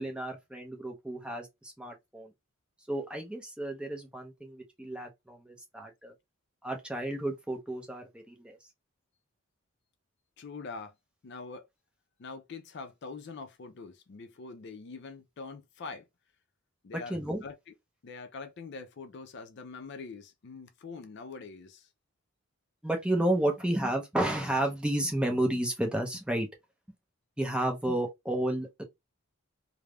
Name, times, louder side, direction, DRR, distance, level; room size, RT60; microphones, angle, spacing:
voice 1, 0.0-2.3 2.9-6.1 6.6-8.6 17.1-17.4 22.8-26.5 27.4-28.8, right 1 dB, 5° right, 0.5 m, -31 dB
voice 2, 10.4-11.0 11.2-11.7 12.2-16.1 16.8-17.6 18.0-21.9, left 4 dB, 55° left, 0.4 m, -44 dB
3.2 x 2.0 x 2.2 m
head